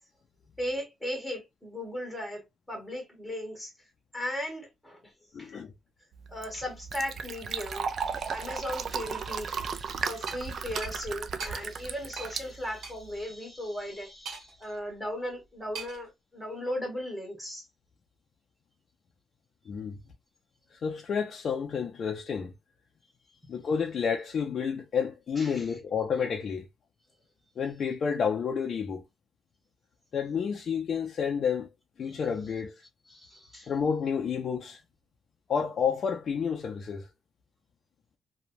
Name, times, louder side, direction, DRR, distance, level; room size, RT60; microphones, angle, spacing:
voice 1, 0.6-3.7 4.1-5.0 5.4-5.5 6.3-17.6 25.4-25.7 32.1-32.2 33.1-33.7, left 1 dB, ahead, 1.0 m, -37 dB
voice 2, 5.3-5.7 19.7-20.0 20.7-22.5 23.5-26.7 27.6-29.0 30.1-31.7 32.0-32.8 33.7-34.8 35.5-37.1, left 6 dB, 45° left, 0.4 m, -30 dB
Fill (with liquid), 6.1-13.2, right 6 dB, 50° right, 0.3 m, -35 dB
sound 1, 10.3-10.4 10.8-10.9 11.4-11.5 12.2-12.3 12.8-12.9 14.3-14.6 15.7-16.1, right 4 dB, 65° right, 1.2 m, -39 dB
3.0 x 2.2 x 2.5 m
wide cardioid pair, 175°, 0 cm